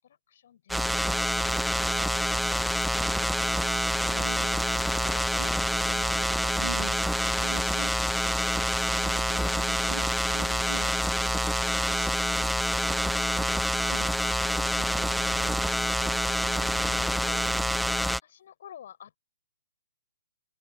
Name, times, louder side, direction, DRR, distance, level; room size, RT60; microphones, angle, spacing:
voice 1, 0.0-2.1 11.2-12.7 17.1-19.2, left 10 dB, 55° left, 6.8 m, -52 dB
sound 1, 0.7-18.2, equal, ahead, 0.3 m, -27 dB
voice 2, 3.7-5.5 5.9-11.3 11.6-12.1 13.4-17.3 17.6-17.8, right 7 dB, 65° right, 2.5 m, -45 dB
open air
figure-of-eight pair, 130°, 0 cm